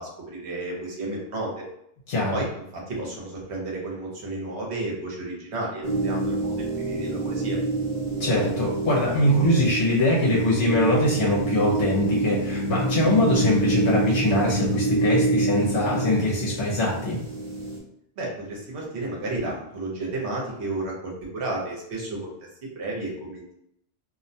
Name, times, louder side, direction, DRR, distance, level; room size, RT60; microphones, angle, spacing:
voice 1, 0.0-1.6 2.3-2.5 2.7-7.6 18.2-22.3 22.6-23.5, right 2 dB, 65° right, -2 dB, 1.0 m, -32 dB
sound 1, 5.8-17.8, right 2 dB, 45° right, 0.7 m, -27 dB
voice 2, 8.2-17.2, left 1 dB, 70° left, -6 dB, 1.0 m, -22 dB
2.5 x 2.1 x 2.6 m, 0.74 s
omnidirectional pair, 1.3 m